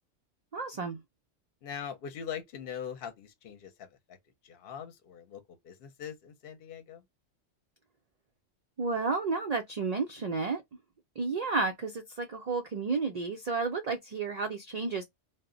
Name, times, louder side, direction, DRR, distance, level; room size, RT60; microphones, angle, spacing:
voice 1, 0.5-1.0 8.8-10.6 11.2-15.0, right 4 dB, 90° right, 0.3 m, -31 dB
voice 2, 1.6-4.2 4.4-7.0, left 8 dB, 60° left, 0.7 m, -42 dB
2.1 x 2.0 x 3.6 m
omnidirectional pair, 1.3 m